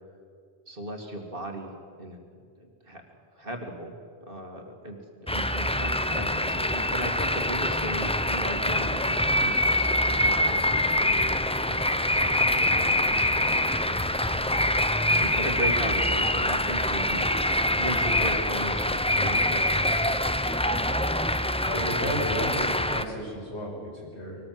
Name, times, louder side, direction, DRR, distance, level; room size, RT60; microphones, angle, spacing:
voice 1, 0.7-2.2 2.6-3.0 3.3-3.9 4.3-14.6 15.2-21.0, right 1 dB, 55° right, 2 dB, 2.7 m, -38 dB
sound 1, 5.3-23.0, left 1 dB, 5° left, 0.6 m, -25 dB
voice 2, 21.6-24.4, equal, 80° left, -3 dB, 6.5 m, -32 dB
23.5 x 19.0 x 7.8 m, 2.2 s
omnidirectional pair, 1.1 m